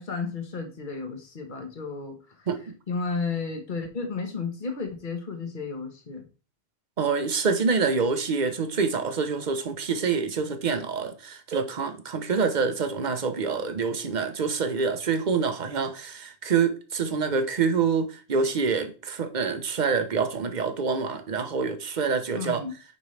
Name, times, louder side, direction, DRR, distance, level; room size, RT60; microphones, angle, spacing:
voice 1, 0.0-2.2 2.9-6.2 22.4-22.7, left 4 dB, 45° left, 1.4 m, -32 dB
voice 2, 7.0-22.6, right 5 dB, 45° right, 1.0 m, -26 dB
8.2 x 5.4 x 3.3 m
omnidirectional pair, 1.2 m